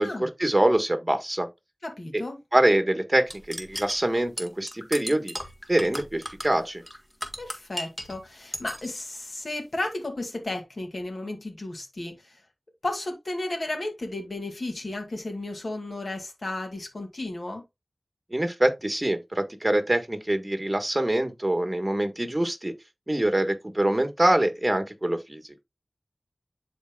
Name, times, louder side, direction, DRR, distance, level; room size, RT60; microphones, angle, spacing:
voice 1, 0.0-1.5 2.1-2.2 2.5-5.3 5.7-6.8 18.3-22.7 23.1-25.6, right 1 dB, 25° right, 1.5 m, -24 dB
voice 2, 1.8-2.4 7.4-12.3 12.8-17.6, left 2 dB, 65° left, 2.4 m, -33 dB
sound 1, 3.3-8.2 8.5-9.0, equal, 15° left, 1.6 m, -36 dB
11.5 x 4.3 x 2.3 m
wide cardioid pair, 50°, 0 cm